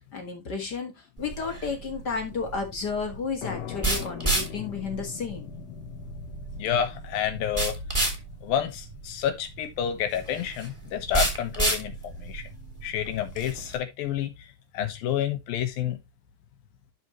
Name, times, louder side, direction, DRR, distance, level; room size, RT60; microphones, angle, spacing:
voice 1, 0.1-0.9 1.2-5.5, left 5 dB, 40° left, 1.5 m, -32 dB
sound 1, 1.2-13.8, right 2 dB, 10° right, 2.2 m, -31 dB
sound 2, 3.4-10.8, left 11 dB, 60° left, 1.9 m, -42 dB
voice 2, 6.6-8.1 8.4-12.4 12.8-14.5 14.7-16.0, left 9 dB, 80° left, 3.1 m, -29 dB
12.5 x 4.6 x 3.1 m
omnidirectional pair, 4.1 m